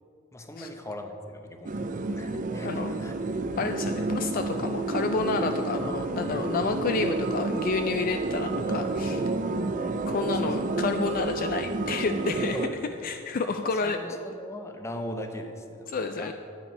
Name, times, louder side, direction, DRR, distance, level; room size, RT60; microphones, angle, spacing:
voice 1, 0.3-1.7 2.1-3.1 6.6-6.7 8.7-8.8 10.3-10.4 12.5-13.1 13.6-16.3, equal, 15° left, 5 dB, 0.7 m, -39 dB
sound 1, 1.7-12.7, right 2 dB, 35° right, 0.5 m, -30 dB
voice 2, 2.6-3.0 3.6-9.3 9.8-12.7 13.0-14.2 15.9-16.3, left 4 dB, 40° left, 7 dB, 0.3 m, -30 dB
10.5 x 9.0 x 5.4 m, 2.8 s
head